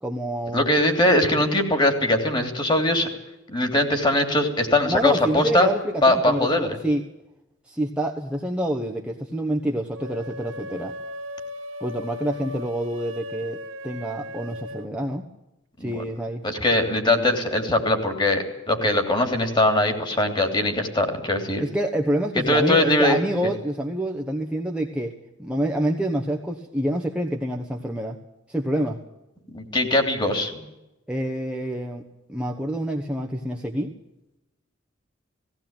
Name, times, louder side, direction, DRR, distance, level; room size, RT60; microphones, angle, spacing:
voice 1, 0.0-0.7 4.9-7.0 7.7-10.9 11.8-15.3 15.8-16.4 21.6-25.1 25.4-28.2 28.5-29.0 31.1-32.0 32.3-33.9, right 1 dB, 5° right, 1 dB, 1.2 m, -27 dB
voice 2, 0.5-3.1 3.5-5.7 6.0-6.8 15.8-16.0 16.4-21.6 22.5-23.2 29.5-30.6, left 1 dB, 25° left, 6 dB, 3.1 m, -21 dB
sound 1, 9.9-14.9, left 1 dB, 75° right, 2.0 m, -37 dB
18.0 x 17.0 x 9.0 m, 0.96 s
head